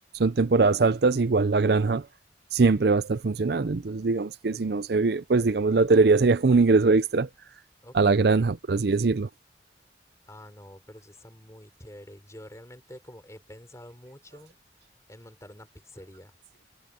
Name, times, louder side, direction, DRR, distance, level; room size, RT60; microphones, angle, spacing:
voice 1, 0.1-2.1 2.5-7.3 7.9-9.3, right 4 dB, 60° right, 0.5 m, -22 dB
voice 2, 7.8-8.5 10.3-14.6 15.1-16.4, equal, 15° left, 5.8 m, -47 dB
head